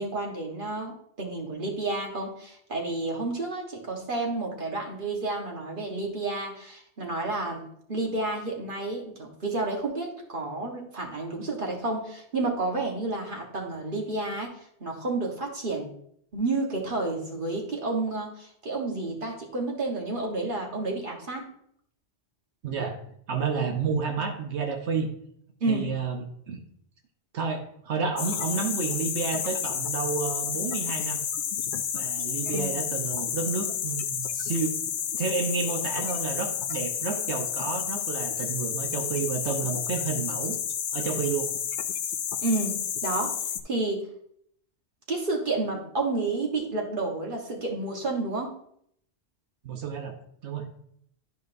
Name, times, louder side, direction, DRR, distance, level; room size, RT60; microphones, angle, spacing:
voice 1, 0.0-14.5 14.8-15.9 16.3-21.5 25.6-25.9 32.4-32.7 42.4-43.3 43.6-44.1 45.1-48.5, right 2 dB, 50° right, -1 dB, 1.5 m, -30 dB
voice 2, 22.6-23.0 23.3-25.1 25.7-26.6 27.3-31.2 31.9-34.7 35.2-40.6 40.9-41.5 49.6-50.2 50.4-50.7, right 5 dB, 80° right, 4 dB, 1.2 m, -30 dB
sound 1, 28.2-43.6, left 8 dB, 60° left, 0.6 m, -31 dB
11.0 x 5.0 x 2.6 m, 0.68 s
omnidirectional pair, 1.1 m